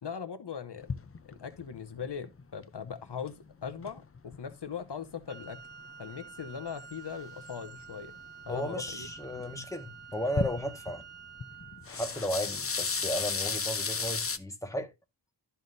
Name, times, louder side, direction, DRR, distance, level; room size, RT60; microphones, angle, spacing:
voice 1, 0.0-0.9 1.2-5.6 6.0-8.2 8.5-9.1, left 7 dB, 75° left, 0.9 m, -40 dB
sound 1, 0.8-4.5 4.9-5.9 6.2-6.3 6.7-8.0 8.4-9.7 10.0-11.0 11.4-14.4, left 5 dB, 35° left, 0.6 m, -35 dB
Wind instrument woodwind instrument, 5.3-11.9, right 8 dB, 85° right, 0.9 m, -49 dB
voice 2, 8.5-11.0 11.9-14.9, equal, 10° left, 1.6 m, -35 dB
12.5 x 5.8 x 2.6 m
wide cardioid pair, 70°, 42 cm